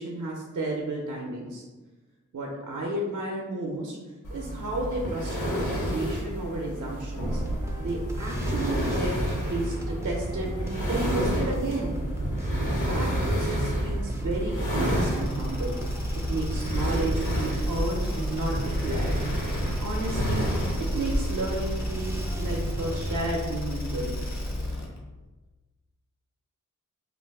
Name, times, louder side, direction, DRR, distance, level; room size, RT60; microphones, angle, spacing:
voice 1, 0.0-1.6 2.3-4.0 4.3-7.4 7.8-12.0 12.9-15.8 16.1-19.2 19.8-20.4 20.9-24.3, right 2 dB, 70° right, -1 dB, 0.6 m, -32 dB
sound 1, 4.2-21.2, equal, 85° left, 1.0 m, -30 dB
sound 2, 7.3-23.2, right 1 dB, 10° right, 0.3 m, -35 dB
sound 3, 14.8-25.0, left 1 dB, 60° left, 0.8 m, -34 dB
2.5 x 2.3 x 3.4 m, 1.2 s
wide cardioid pair, 60°, 31 cm